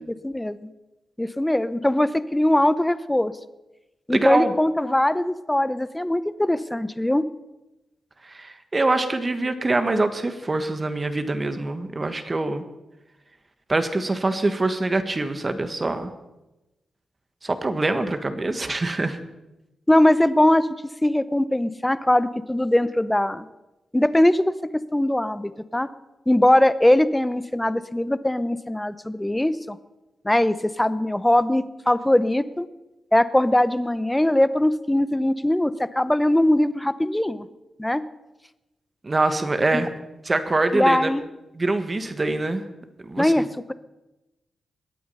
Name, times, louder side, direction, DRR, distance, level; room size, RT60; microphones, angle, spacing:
voice 1, 0.2-0.7 1.2-3.3 4.1-7.2 19.9-20.7 21.0-23.5 23.9-24.5 24.9-25.9 26.3-29.8 30.2-32.7 33.1-37.5 37.8-38.0 39.7-39.8 40.7-41.2 43.2-43.7, left 1 dB, 10° left, 14 dB, 0.8 m, -21 dB
voice 2, 4.1-4.5 8.2-12.6 13.7-16.1 17.4-19.2 39.0-39.9 40.2-41.1 41.5-42.6 43.0-43.3, right 2 dB, 30° right, 9 dB, 1.4 m, -24 dB
21.0 x 8.6 x 5.6 m, 1.0 s
cardioid pair, 65°, 0 cm